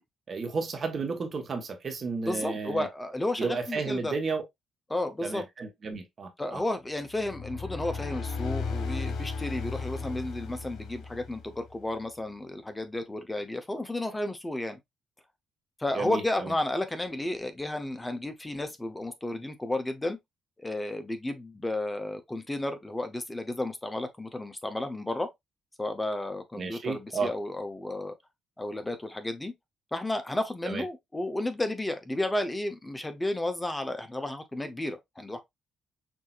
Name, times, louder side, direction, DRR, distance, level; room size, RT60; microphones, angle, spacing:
voice 1, 0.3-2.9 3.4-4.4 5.2-6.6 15.9-16.5 26.5-27.3 30.6-30.8, right 4 dB, 45° right, 1.2 m, -32 dB
voice 2, 2.3-4.2 4.9-5.4 6.4-14.8 15.8-20.2 20.6-25.3 25.8-28.1 28.6-29.5 29.9-35.4, left 1 dB, 15° left, 0.7 m, -32 dB
sound 1, 7.1-11.8, left 4 dB, 80° left, 1.2 m, -35 dB
6.1 x 2.7 x 2.4 m
cardioid pair, 90°, 0 cm